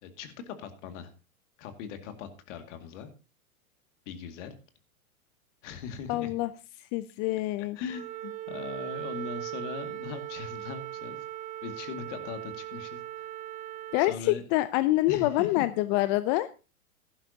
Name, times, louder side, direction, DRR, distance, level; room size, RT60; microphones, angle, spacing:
voice 1, 0.0-1.1 1.6-3.1 4.1-4.5 5.6-6.3 7.6-11.2 11.6-13.3 14.0-14.4 15.1-15.7, left 7 dB, 55° left, 7 dB, 2.2 m, -40 dB
voice 2, 6.1-6.5 6.9-7.8 13.9-16.5, left 17 dB, 35° left, 14 dB, 0.5 m, -26 dB
Wind instrument woodwind instrument, 7.9-14.2, right 14 dB, 20° right, 0.7 m, -39 dB
15.5 x 11.5 x 2.8 m, 0.32 s
hypercardioid pair, 110°, 42 cm